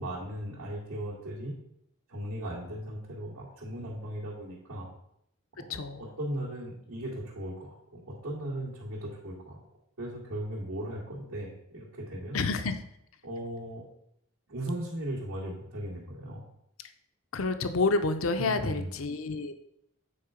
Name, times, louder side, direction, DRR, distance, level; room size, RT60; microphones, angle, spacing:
voice 1, 0.0-1.6 2.1-4.9 5.6-5.7 6.0-9.6 10.0-12.4 13.2-13.8 14.5-16.4 18.4-18.9, right 1 dB, 80° right, -7 dB, 2.2 m, -37 dB
voice 2, 5.7-6.0 12.3-12.8 17.3-19.5, left 3 dB, 70° left, 9 dB, 0.7 m, -29 dB
8.7 x 4.6 x 5.0 m, 0.75 s
head